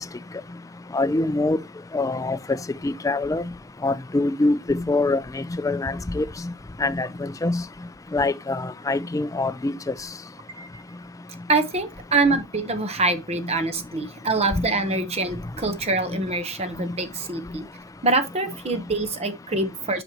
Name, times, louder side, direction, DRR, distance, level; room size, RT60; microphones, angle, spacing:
voice 1, 0.9-1.6 1.9-2.4 2.8-3.4 3.8-6.3 6.8-7.6 8.1-9.7 14.6-14.7, left 2 dB, 15° left, 0.4 m, -24 dB
voice 2, 11.5-17.7 18.0-20.0, right 3 dB, 30° right, 0.9 m, -25 dB
7.9 x 5.2 x 2.9 m
head